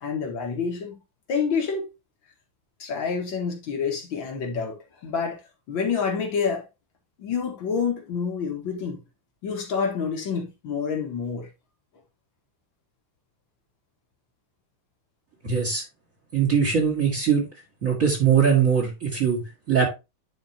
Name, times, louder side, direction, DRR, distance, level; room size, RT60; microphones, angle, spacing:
voice 1, 0.0-1.0 1.3-1.9 2.8-5.4 5.7-6.7 7.2-9.0 9.4-11.5, left 6 dB, 70° left, 2.5 m, -28 dB
voice 2, 15.4-15.8 16.3-17.5 17.8-19.9, right 7 dB, 40° right, 2.1 m, -21 dB
10.0 x 4.5 x 2.8 m
omnidirectional pair, 2.3 m